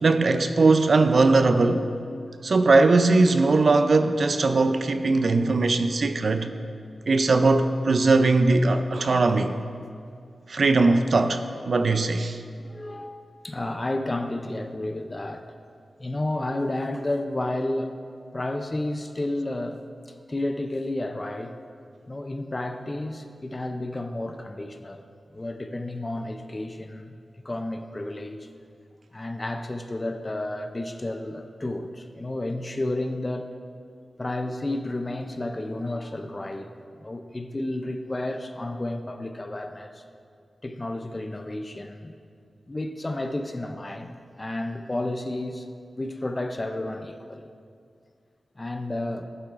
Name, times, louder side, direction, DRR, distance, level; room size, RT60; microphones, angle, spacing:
voice 1, 0.0-1.9 2.4-6.5 7.1-9.5 10.5-12.4, right 3 dB, 55° right, 9 dB, 0.4 m, -20 dB
voice 2, 12.6-15.5 16.0-18.0 18.3-19.8 20.3-21.5 22.1-25.0 25.3-27.2 27.4-28.5 29.1-33.5 34.2-36.7 37.0-40.0 40.6-42.1 42.7-45.7 46.0-47.5 48.6-49.3, left 1 dB, 25° left, 7 dB, 0.4 m, -31 dB
12.5 x 8.6 x 2.5 m, 2.3 s
wide cardioid pair, 130°, 0 cm